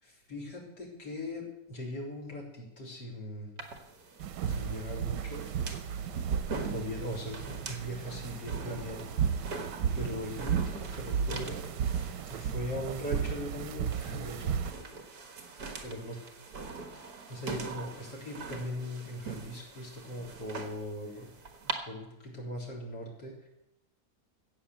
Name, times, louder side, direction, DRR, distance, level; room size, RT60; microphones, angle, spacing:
voice 1, 0.0-3.5 4.5-5.5 6.4-9.1 9.4-11.6 12.3-14.6 15.4-16.2 17.3-21.3 21.6-23.5, left 1 dB, 70° left, 0 dB, 4.3 m, -40 dB
sound 1, 3.6-21.7, right 4 dB, 60° right, 2.1 m, -43 dB
sound 2, 4.2-14.7, right 7 dB, 90° right, 1.4 m, -34 dB
14.5 x 8.4 x 7.7 m, 0.89 s
omnidirectional pair, 1.8 m